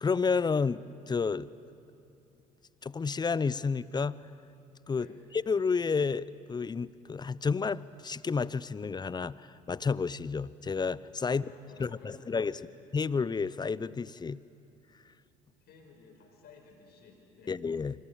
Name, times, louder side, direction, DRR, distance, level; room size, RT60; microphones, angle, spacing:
voice 1, 0.0-1.5 2.8-4.2 4.9-5.1 5.5-11.4 11.8-12.6 12.9-14.4 17.5-17.9, left 5 dB, 20° left, 19 dB, 0.7 m, -30 dB
voice 2, 4.9-5.2 11.3-12.7 15.6-17.6, left 5 dB, 55° left, 3 dB, 5.4 m, -55 dB
26.5 x 25.5 x 7.2 m, 2.8 s
hypercardioid pair, 55°, 20 cm